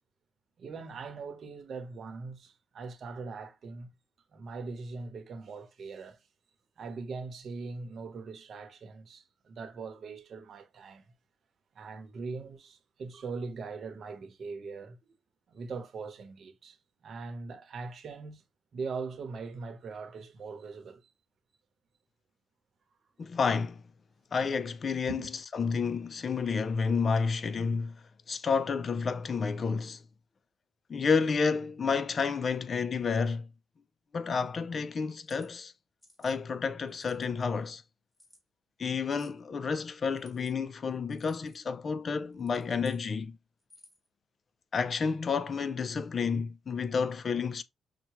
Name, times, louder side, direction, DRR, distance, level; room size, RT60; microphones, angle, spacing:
voice 1, 0.6-3.9 4.3-6.2 6.8-11.1 11.7-15.0 15.5-16.8 17.0-18.4 18.7-21.0 25.1-25.3, right 4 dB, 55° right, 0.9 m, -41 dB
voice 2, 23.2-23.8 24.3-28.0 28.3-30.0 30.9-33.5 34.1-35.7 36.2-37.8 38.8-43.4 44.7-47.6, left 5 dB, 40° left, 0.4 m, -30 dB
sound 1, 35.1-35.5 36.0-36.4 36.9-37.4 38.1-38.4 39.1-39.4 40.1-40.5 41.1-41.6 42.3-43.0 43.6-44.1, left 1 dB, 10° left, 1.9 m, -60 dB
5.8 x 2.2 x 3.0 m
cardioid pair, 90°, 0 cm